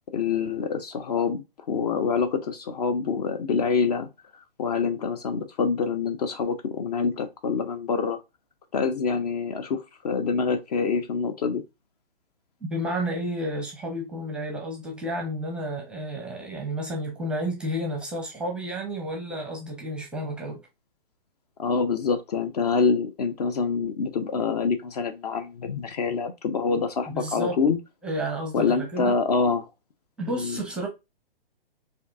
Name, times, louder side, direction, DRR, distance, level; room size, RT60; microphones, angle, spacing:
voice 1, 0.1-4.1 4.6-8.2 8.7-11.6 21.6-27.8 28.5-29.7 30.4-30.6, left 5 dB, 45° left, 0.5 m, -26 dB
voice 2, 12.7-20.6 27.1-27.6 28.0-29.2 30.2-30.9, right 1 dB, 5° right, 0.6 m, -31 dB
4.3 x 2.7 x 2.4 m
figure-of-eight pair, 120°, 30 cm